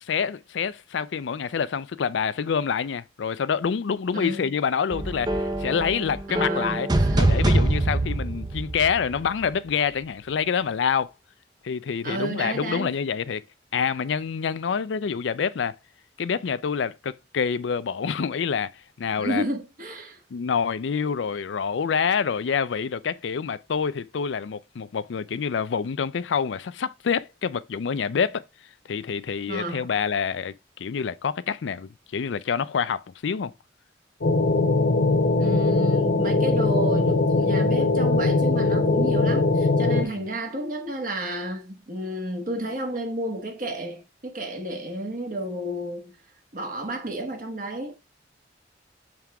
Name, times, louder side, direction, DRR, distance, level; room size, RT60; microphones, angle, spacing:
voice 1, 0.0-6.9 7.2-11.1 11.6-13.4 13.7-15.8 16.2-19.4 20.3-28.4 28.9-33.5 40.0-40.3, left 6 dB, 85° left, 0.4 m, -27 dB
voice 2, 4.1-4.5 6.3-7.3 12.0-12.9 19.2-20.2 29.5-29.9 35.4-46.1 46.5-48.0, right 1 dB, 45° right, 1.3 m, -31 dB
sound 1, 4.9-9.5, right 1 dB, 25° right, 0.6 m, -24 dB
sound 2, 34.2-40.0, left 3 dB, 65° left, 1.0 m, -21 dB
7.4 x 3.5 x 4.7 m
head